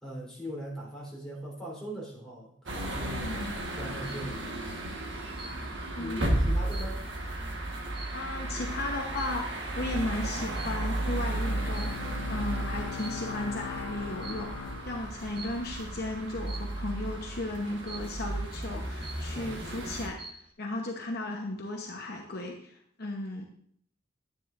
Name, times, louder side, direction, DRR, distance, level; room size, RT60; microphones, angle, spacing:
voice 1, 0.0-3.5 3.7-4.6 5.5-7.0 19.3-19.6, equal, 5° left, -6 dB, 3.4 m, -41 dB
sound 1, 2.7-20.1, right 1 dB, 60° right, 1.3 m, -34 dB
voice 2, 3.2-3.5 5.9-6.4 8.1-23.4, left 2 dB, 50° left, 1 dB, 0.9 m, -35 dB
sound 2, 4.0-4.3 5.4-5.9 6.3-8.5 9.1-9.5 10.5-10.9 11.7-12.3 12.8-13.5 14.2-14.6 15.4-15.8 16.5-16.9 17.9-18.3 18.7-18.8 19.0-19.6 20.0-20.5, right 3 dB, 25° right, 0.9 m, -47 dB
Bowed string instrument, 11.1-16.1, left 6 dB, 90° left, 0.5 m, -41 dB
9.8 x 9.8 x 2.5 m, 0.63 s
head